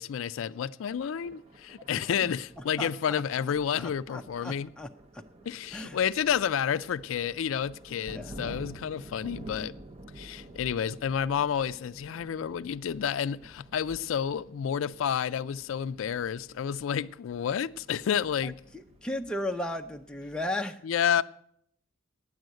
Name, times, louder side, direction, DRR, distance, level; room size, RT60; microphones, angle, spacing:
voice 1, 0.0-4.7 5.5-9.7 10.2-18.6 20.8-21.2, left 8 dB, 75° left, 0.4 m, -30 dB
Thunder, 0.9-20.6, right 1 dB, 30° right, 0.7 m, -50 dB
voice 2, 2.8-3.2 3.8-5.2 5.7-6.0 8.1-8.6 18.4-18.5 19.0-20.8, left 1 dB, 5° left, 0.5 m, -35 dB
9.7 x 7.7 x 9.2 m
head